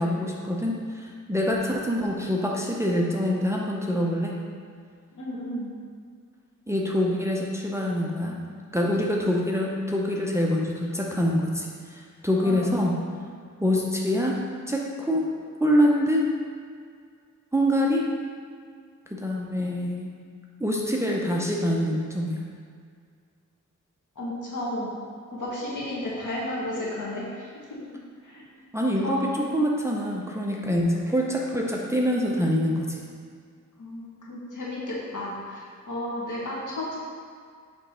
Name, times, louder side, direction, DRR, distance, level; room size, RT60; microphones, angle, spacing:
voice 1, 0.0-4.4 6.7-8.4 8.7-13.0 13.6-15.3 15.6-16.2 17.5-18.1 19.1-20.1 20.6-22.4 28.7-33.0, equal, 10° right, -2 dB, 0.6 m, -25 dB
voice 2, 5.1-5.7 12.4-12.9 24.2-24.9 25.3-27.8 28.2-28.4 29.0-29.4 33.8-37.0, left 1 dB, 75° left, -5 dB, 1.5 m, -33 dB
6.9 x 3.1 x 4.3 m, 2.1 s
wide cardioid pair, 85°, 31 cm